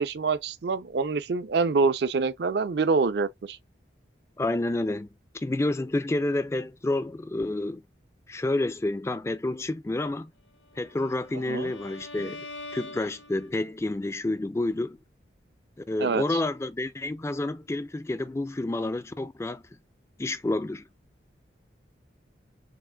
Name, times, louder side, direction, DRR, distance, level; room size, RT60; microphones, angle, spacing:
voice 1, 0.0-3.6 11.3-11.7 16.0-16.4, right 4 dB, 60° right, 0.4 m, -26 dB
voice 2, 4.4-5.1 5.3-7.8 8.3-10.3 10.8-12.5 12.7-15.0 15.9-19.6 20.2-20.9, left 2 dB, 15° left, 0.3 m, -29 dB
Bowed string instrument, 10.7-13.8, left 2 dB, 70° left, 0.6 m, -44 dB
5.8 x 2.5 x 2.2 m
head